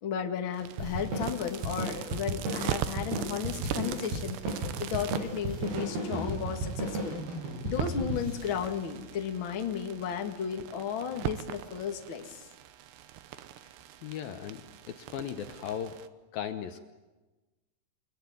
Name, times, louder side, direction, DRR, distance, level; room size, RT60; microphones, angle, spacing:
voice 1, 0.0-4.4 4.8-7.2 7.6-12.5, left 7 dB, 45° left, 4 dB, 1.7 m, -34 dB
sound 1, 0.5-16.1, right 11 dB, 85° right, 3.2 m, -41 dB
sound 2, 0.8-9.6, right 1 dB, 65° right, 10.0 m, -35 dB
voice 2, 14.0-14.6 14.9-16.0 16.3-16.8, left 9 dB, 70° left, 7 dB, 2.5 m, -37 dB
29.5 x 21.0 x 9.5 m, 1.2 s
omnidirectional pair, 4.9 m